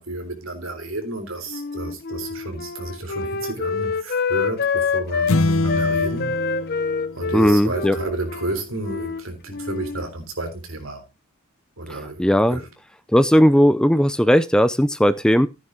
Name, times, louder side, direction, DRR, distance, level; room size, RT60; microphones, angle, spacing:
voice 1, 0.0-6.3 7.1-11.0 11.8-12.2 12.5-12.7, right 2 dB, 75° right, 3.9 m, -31 dB
Wind instrument woodwind instrument, 1.5-5.4 5.7-9.2 9.5-10.1, left 5 dB, 50° left, 0.8 m, -26 dB
sound 1, 5.3-7.9, left 2 dB, 80° left, 0.7 m, -24 dB
voice 2, 7.3-8.0 12.2-12.6 13.1-15.5, equal, 5° left, 0.5 m, -16 dB
15.0 x 9.7 x 2.8 m
head